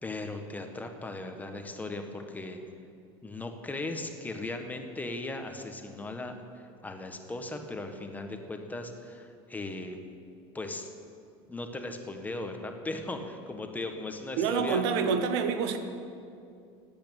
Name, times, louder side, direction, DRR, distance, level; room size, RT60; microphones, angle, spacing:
voice 1, 0.0-2.6 3.2-6.3 6.8-10.0 10.5-10.9 11.5-14.8, left 2 dB, 10° left, 5 dB, 1.6 m, -37 dB
voice 2, 14.4-15.8, right 6 dB, 75° right, 8 dB, 1.5 m, -27 dB
17.0 x 8.9 x 9.0 m, 2.4 s
supercardioid pair, 115°, 14 cm